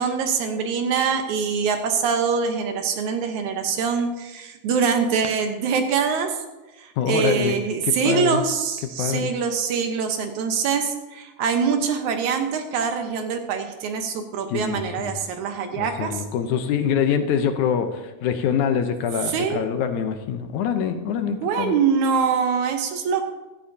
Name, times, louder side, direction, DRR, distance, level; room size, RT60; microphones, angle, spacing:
voice 1, 0.0-6.4 6.8-16.2 19.3-19.7 21.1-23.2, right 6 dB, 75° right, 5 dB, 2.4 m, -24 dB
voice 2, 7.0-7.6 7.8-8.4 9.0-9.3 14.5-15.2 15.7-21.7, left 7 dB, 75° left, 8 dB, 2.2 m, -25 dB
15.0 x 13.0 x 2.8 m, 1.1 s
omnidirectional pair, 3.5 m